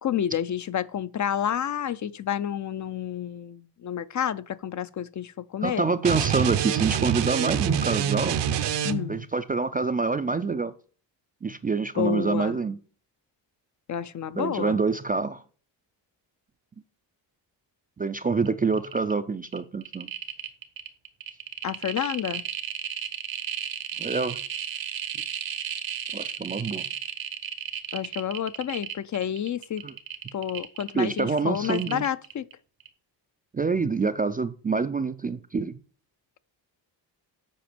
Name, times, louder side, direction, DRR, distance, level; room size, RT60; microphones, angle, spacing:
voice 1, 0.0-5.8 8.8-9.2 12.0-12.6 13.9-14.8 21.6-22.4 27.9-29.8 30.3-32.5, left 9 dB, 45° left, 0.4 m, -29 dB
voice 2, 5.6-8.4 9.1-10.7 11.4-12.8 14.4-15.4 18.0-20.1 24.0-24.4 26.1-26.8 29.8-29.9 30.9-32.0 33.5-35.7, right 4 dB, 20° right, 0.3 m, -26 dB
sound 1, 6.0-9.3, right 9 dB, 70° right, 0.7 m, -26 dB
sound 2, 18.4-18.5 18.7-19.1 19.5-32.5 32.8-32.9, right 9 dB, 85° right, 1.2 m, -34 dB
7.8 x 5.1 x 5.0 m
cardioid pair, 115°, 44 cm